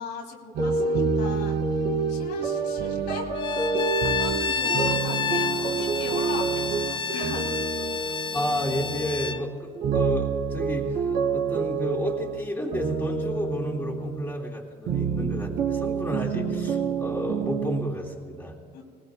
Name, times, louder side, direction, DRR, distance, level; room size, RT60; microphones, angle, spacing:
voice 1, 0.0-1.6 2.1-3.3 4.0-7.6 18.7-18.8, left 4 dB, 85° left, 0 dB, 2.2 m, -37 dB
sound 1, 0.5-9.5 9.7-14.3 14.9-17.9, right 5 dB, 75° right, 2.2 m, -28 dB
Bowed string instrument, 3.4-9.4, left 6 dB, 30° left, 0.4 m, -30 dB
voice 2, 8.3-11.0 11.3-18.5, equal, 10° left, -2 dB, 2.8 m, -31 dB
20.0 x 19.5 x 2.2 m, 2.2 s
cardioid pair, 110°, 17 cm